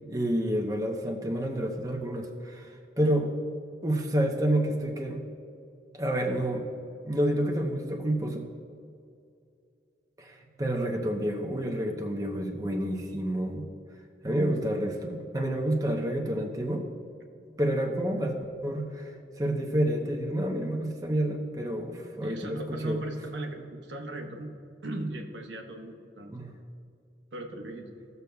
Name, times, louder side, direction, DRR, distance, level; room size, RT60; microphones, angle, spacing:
voice 1, 0.1-3.3 3.8-5.2 5.9-6.6 7.0-8.5 10.2-13.7 14.2-16.8 17.6-19.1 19.4-23.0 26.3-26.5, right 1 dB, 20° right, 1 dB, 0.8 m, -29 dB
voice 2, 22.2-24.5 24.8-26.3 27.3-27.9, right 2 dB, 90° right, 2 dB, 1.1 m, -37 dB
16.0 x 6.8 x 2.3 m, 2.4 s
head